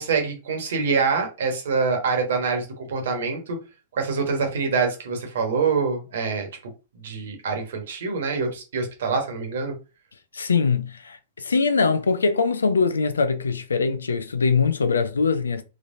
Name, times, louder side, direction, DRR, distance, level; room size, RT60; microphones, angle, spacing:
voice 1, 0.0-3.6 3.9-6.5 7.0-9.7, right 5 dB, 55° right, 1.4 m, -25 dB
voice 2, 10.3-15.6, left 4 dB, 70° left, 0.6 m, -22 dB
3.7 x 3.3 x 2.7 m
figure-of-eight pair, 105°, 0 cm